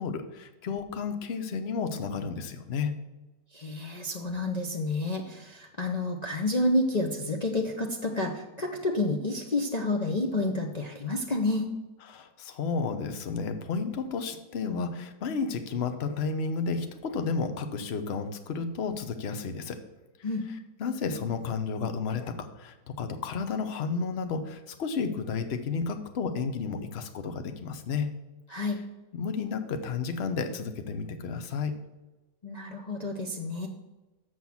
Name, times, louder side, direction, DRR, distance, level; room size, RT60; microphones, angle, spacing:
voice 1, 0.0-2.9 12.1-19.8 20.8-28.1 28.5-28.6 29.1-31.7, left 5 dB, 50° left, 8 dB, 0.9 m, -32 dB
voice 2, 3.5-11.7 20.2-20.4 28.5-28.8 32.4-33.7, left 2 dB, 65° left, 1 dB, 0.4 m, -29 dB
7.2 x 6.1 x 7.1 m, 1.1 s
omnidirectional pair, 1.9 m